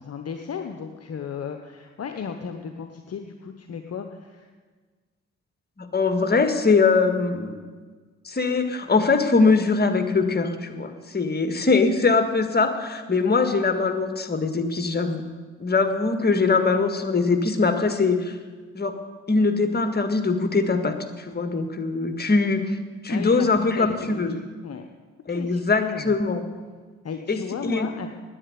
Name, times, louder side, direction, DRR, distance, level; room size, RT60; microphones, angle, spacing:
voice 1, 0.0-4.5 23.1-24.9 25.3-26.2 27.0-28.1, left 6 dB, 45° left, 6 dB, 1.0 m, -35 dB
voice 2, 5.8-7.5 8.3-15.2 15.6-18.4 18.7-19.0 19.3-22.8 23.0-24.3 25.3-26.4 27.3-27.9, left 4 dB, 30° left, 7 dB, 1.7 m, -22 dB
9.9 x 9.2 x 9.4 m, 1.5 s
hypercardioid pair, 45°, 34 cm